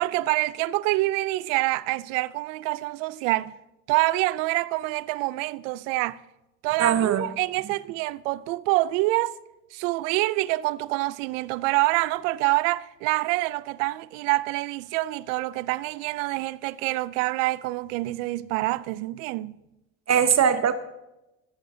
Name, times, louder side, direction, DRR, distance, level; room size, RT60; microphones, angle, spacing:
voice 1, 0.0-3.5 3.9-6.2 6.6-9.3 9.7-19.6, right 19 dB, 90° right, 0.5 m, -26 dB
voice 2, 6.8-7.2 20.1-20.7, right 8 dB, 45° right, 1.0 m, -20 dB
22.5 x 8.3 x 2.7 m
supercardioid pair, 80°, 37 cm